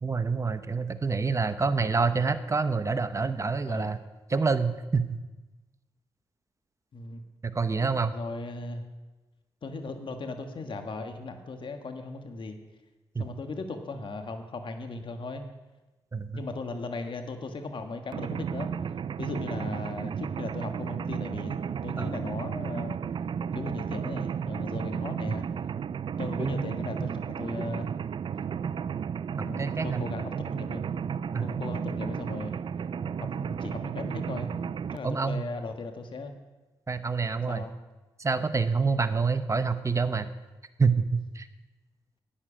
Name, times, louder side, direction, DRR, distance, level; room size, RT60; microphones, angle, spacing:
voice 1, 0.0-4.0 4.3-5.2 7.4-8.1 13.1-13.3 16.1-16.4 22.0-22.2 25.3-25.4 26.4-26.6 27.0-27.1 29.4-30.1 31.3-31.5 35.0-35.4 36.9-37.6 38.2-40.3 40.8-41.5, right 4 dB, 30° right, 11 dB, 1.0 m, -27 dB
voice 2, 3.6-4.0 6.9-7.2 8.1-8.8 9.6-12.6 13.2-15.4 16.3-18.7 19.2-23.0 23.5-25.4 26.2-27.1 27.4-27.9 29.4-30.8 31.4-32.6 33.2-34.6 34.9-36.3 37.5-37.7, left 3 dB, 55° left, 6 dB, 1.6 m, -37 dB
Mechanisms, 18.1-35.0, right 7 dB, 55° right, 0.4 m, -33 dB
13.0 x 9.3 x 5.1 m, 1.1 s
supercardioid pair, 50°, 10 cm